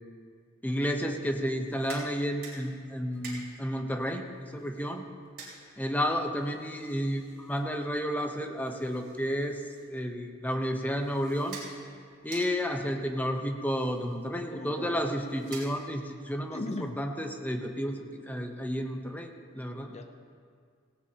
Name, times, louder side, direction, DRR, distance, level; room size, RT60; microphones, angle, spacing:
voice 1, 0.6-5.0 5.8-9.6 9.9-11.6 12.2-16.6 17.0-19.9, equal, 10° left, 4 dB, 0.8 m, -31 dB
sound 1, 1.5-16.2, right 3 dB, 45° right, 3.6 m, -51 dB
voice 2, 14.5-15.1 16.5-17.0 19.9-20.1, left 2 dB, 30° left, 6 dB, 0.6 m, -38 dB
18.0 x 17.0 x 2.9 m, 2.1 s
head